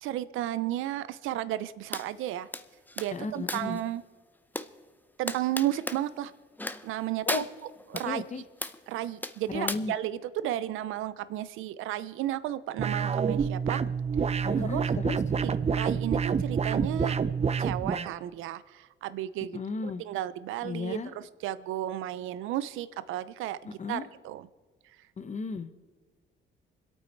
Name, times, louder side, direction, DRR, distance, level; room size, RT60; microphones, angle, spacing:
voice 1, 0.0-2.5 3.0-4.0 5.2-6.3 6.8-7.4 7.9-8.2 8.9-13.8 14.3-14.8 15.4-17.2 17.6-23.6 23.9-24.5, right 13 dB, 90° right, 16 dB, 0.6 m, -33 dB
sound 1, 1.9-2.1 2.5-3.8 4.5-4.7 5.3-6.0 6.6-6.9 7.3-8.1 8.6-8.8 9.2-9.8, left 2 dB, 10° left, 0.7 m, -35 dB
voice 2, 3.1-3.8 7.3-7.5 8.0-8.4 9.5-9.9 14.4-15.2 19.5-20.0 20.6-21.1 23.6-24.1 25.2-25.7, left 4 dB, 35° left, 10 dB, 1.2 m, -34 dB
sound 2, 12.8-18.1, right 6 dB, 30° right, 0.6 m, -28 dB
26.5 x 8.8 x 4.6 m, 1.4 s
cardioid pair, 90°, 20 cm